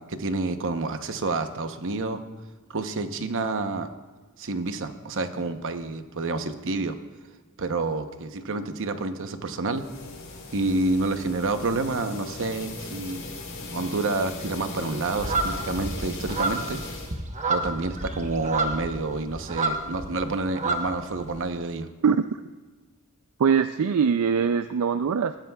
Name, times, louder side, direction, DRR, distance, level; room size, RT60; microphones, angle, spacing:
voice 1, 0.0-2.2 2.7-3.9 4.4-7.0 7.6-9.8 10.5-13.2 13.7-16.8 17.5-21.9, right 3 dB, 60° right, 8 dB, 0.9 m, -28 dB
sound 1, 9.7-17.1, left 2 dB, 60° left, 3.5 m, -38 dB
sound 2, 15.2-20.1 20.4-21.4, right 3 dB, 35° right, 1.1 m, -29 dB
voice 2, 23.4-25.4, right 6 dB, 75° right, 10 dB, 0.4 m, -22 dB
20.0 x 15.0 x 2.3 m, 1.3 s
head